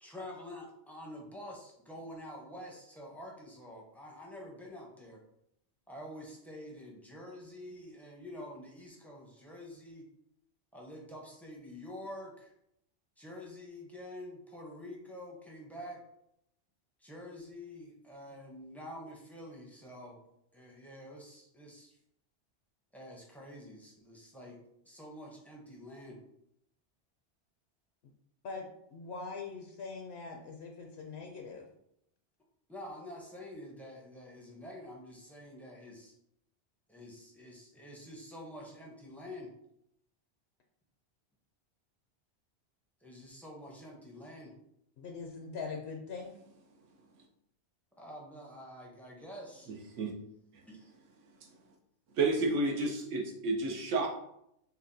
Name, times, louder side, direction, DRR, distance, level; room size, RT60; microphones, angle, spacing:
voice 1, 0.0-5.2 5.9-10.1 10.7-12.5 13.2-16.0 17.0-20.2 20.5-22.0 22.9-24.6 24.8-26.2 32.7-36.1 36.9-39.5 43.0-44.5 48.0-49.7 50.7-50.9, left 1 dB, ahead, -2 dB, 0.5 m, -47 dB
voice 2, 28.4-31.7 45.0-46.3, left 4 dB, 65° left, 2 dB, 0.8 m, -42 dB
voice 3, 52.2-54.1, right 3 dB, 85° right, 1 dB, 1.1 m, -30 dB
5.5 x 2.3 x 2.6 m, 0.76 s
omnidirectional pair, 1.2 m